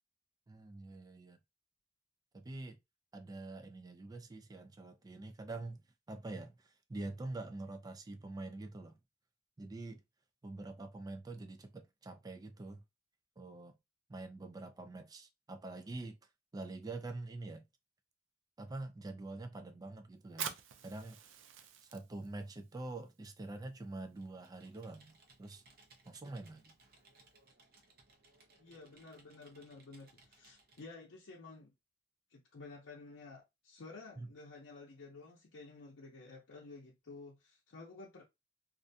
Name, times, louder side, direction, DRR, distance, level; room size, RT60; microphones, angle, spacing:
voice 1, 0.5-1.4 2.3-2.8 3.1-9.0 9.6-10.0 10.4-12.8 13.4-13.8 14.1-16.2 16.5-17.7 18.6-21.2 21.8-25.6 26.1-26.7 34.2-34.3, right 2 dB, 20° right, 0.3 m, -46 dB
Fire, 20.2-27.5, right 8 dB, 90° right, 0.4 m, -50 dB
Computer keyboard, 24.1-30.9, right 3 dB, 55° right, 0.7 m, -65 dB
voice 2, 28.6-31.7 32.3-38.2, left 3 dB, 85° left, 0.6 m, -52 dB
2.4 x 2.2 x 2.6 m
head